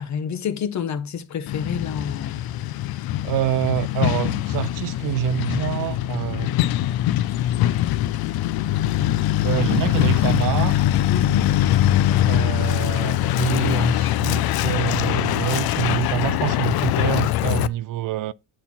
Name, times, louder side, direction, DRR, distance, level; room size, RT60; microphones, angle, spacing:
voice 1, 0.0-2.4 11.1-11.5, left 7 dB, 50° left, 1.2 m, -28 dB
Truck, 1.5-17.7, left 13 dB, 85° left, 0.6 m, -22 dB
voice 2, 3.2-6.5 9.4-10.9 12.3-18.3, right 14 dB, 65° right, 0.5 m, -26 dB
9.2 x 4.4 x 5.7 m
cardioid pair, 125°, 35 cm